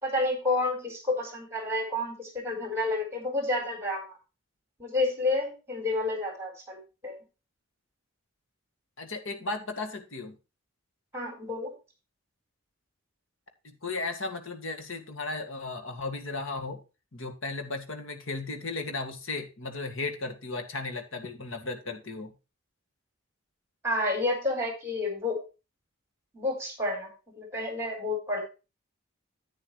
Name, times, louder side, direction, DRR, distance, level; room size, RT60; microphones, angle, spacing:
voice 1, 0.0-4.0 4.8-7.2 11.1-11.7 23.8-25.4 26.3-27.1 27.4-28.4, left 2 dB, 10° right, 3 dB, 4.1 m, -30 dB
voice 2, 9.0-10.4 13.8-16.8 17.1-22.3, left 3 dB, 65° left, 6 dB, 2.0 m, -35 dB
10.5 x 9.0 x 3.1 m, 0.30 s
head